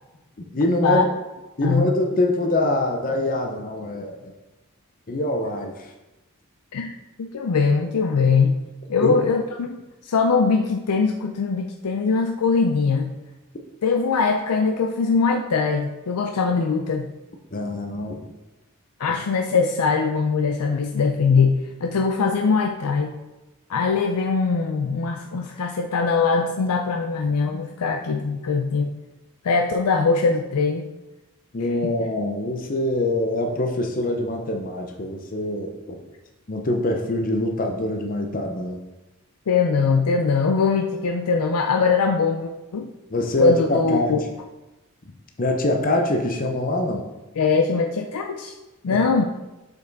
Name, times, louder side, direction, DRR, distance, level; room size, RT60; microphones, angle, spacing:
voice 1, 0.5-1.1 1.6-4.3 5.1-5.9 9.0-9.2 17.5-18.2 19.1-19.2 31.5-36.0 36.5-38.8 43.1-44.2 45.4-47.0 48.9-49.0, left 1 dB, 40° left, 3 dB, 0.7 m, -24 dB
voice 2, 1.6-1.9 6.7-6.9 7.2-8.6 8.9-13.1 13.8-17.1 19.0-23.1 23.7-28.9 29.4-30.9 39.5-42.9 43.4-44.2 47.4-48.5 48.8-49.2, left 4 dB, 90° left, 3 dB, 0.5 m, -21 dB
6.7 x 5.4 x 4.0 m, 1.0 s
head